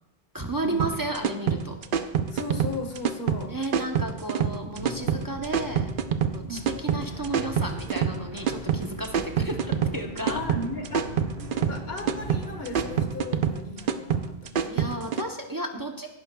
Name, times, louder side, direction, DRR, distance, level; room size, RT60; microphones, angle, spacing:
voice 1, 0.3-1.8 3.5-5.9 6.3-10.4 14.7-16.1, right 1 dB, 20° right, 2 dB, 0.8 m, -33 dB
sound 1, 0.8-15.2, right 8 dB, 60° right, 0.8 m, -27 dB
voice 2, 2.3-3.5 6.5-6.7 10.2-11.2 11.5-14.9, left 3 dB, 80° left, 4 dB, 1.6 m, -36 dB
sound 2, 4.7-13.0, equal, 80° right, 5.3 m, -41 dB
17.0 x 11.0 x 2.3 m, 0.95 s
omnidirectional pair, 1.0 m